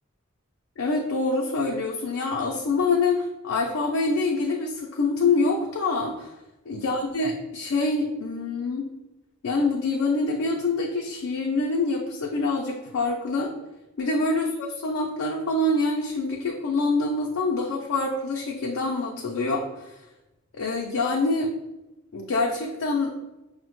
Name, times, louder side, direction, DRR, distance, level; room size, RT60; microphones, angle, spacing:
voice 1, 0.8-6.3 6.7-8.8 9.4-13.5 14.0-20.1 20.5-21.5 22.1-23.1, left 3 dB, 75° left, 0 dB, 0.4 m, -25 dB
5.4 x 2.1 x 3.0 m, 0.98 s
head